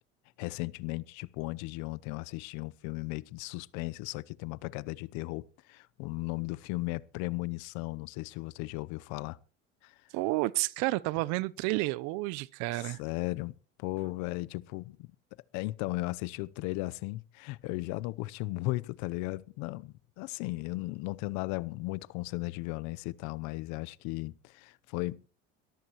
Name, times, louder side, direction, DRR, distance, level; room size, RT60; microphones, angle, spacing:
voice 1, 0.4-9.4 9.8-10.0 12.7-15.1 15.5-25.2, left 20 dB, 70° left, 0.8 m, -36 dB
voice 2, 10.1-13.0, right 21 dB, 70° right, 0.8 m, -30 dB
22.0 x 13.5 x 3.0 m
supercardioid pair, 95°, 29 cm